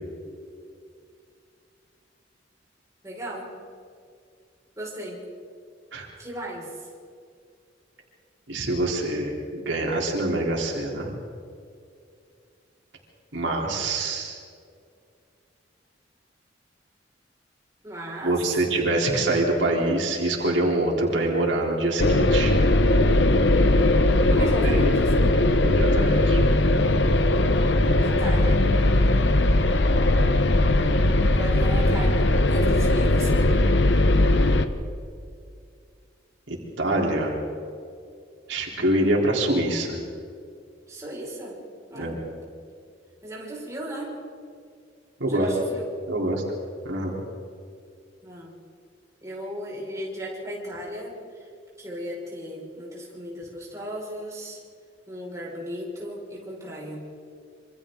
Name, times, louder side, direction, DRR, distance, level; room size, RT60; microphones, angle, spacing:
voice 1, 3.0-3.5 4.8-5.2 6.2-6.7 17.8-18.6 24.3-25.4 28.0-28.7 31.3-33.5 40.9-41.6 41.9-42.1 43.2-44.2 45.3-45.8 48.2-48.6 49.2-51.4 51.8-54.6 55.1-57.2, equal, 15° right, -4 dB, 5.5 m, -36 dB
voice 2, 8.5-11.1 13.3-14.4 18.2-22.5 24.4-25.0 25.5-26.5 36.5-37.4 38.5-40.0 41.9-42.1 45.2-45.5 46.1-46.4 46.8-47.2, right 1 dB, 85° right, -2 dB, 3.8 m, -25 dB
sound 1, 22.0-34.7, left 1 dB, 70° left, 1.1 m, -19 dB
27.0 x 25.5 x 3.9 m, 2.3 s
head